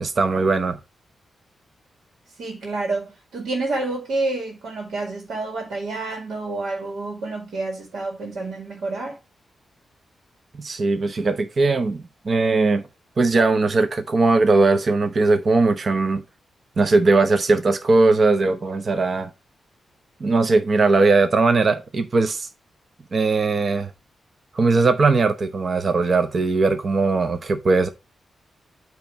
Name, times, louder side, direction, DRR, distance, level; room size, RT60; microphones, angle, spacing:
voice 1, 0.0-0.8 10.5-12.8 13.2-16.2 16.8-19.3 20.2-22.5 23.1-23.9 24.5-27.9, right 3 dB, 35° right, 0.7 m, -19 dB
voice 2, 2.4-9.2, right 2 dB, 80° right, 1.9 m, -28 dB
8.7 x 3.0 x 5.8 m
wide cardioid pair, 155°, 0 cm